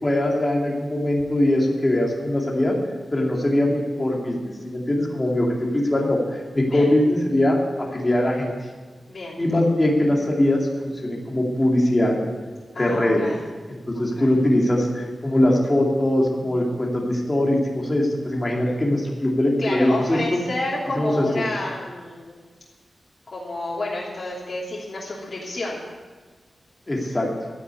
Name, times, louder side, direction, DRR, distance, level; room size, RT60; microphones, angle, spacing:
voice 1, 0.0-2.7 3.1-4.4 4.6-8.5 9.4-12.1 12.8-13.2 13.9-20.4 21.0-21.5 26.9-27.3, left 1 dB, 20° left, -2 dB, 2.4 m, -21 dB
voice 2, 9.1-9.4 12.7-13.4 13.9-14.3 18.8-18.9 19.6-22.4 23.3-25.8, left 2 dB, 50° left, -6 dB, 3.1 m, -30 dB
12.5 x 9.6 x 8.2 m, 1.4 s
wide cardioid pair, 125°, 0 cm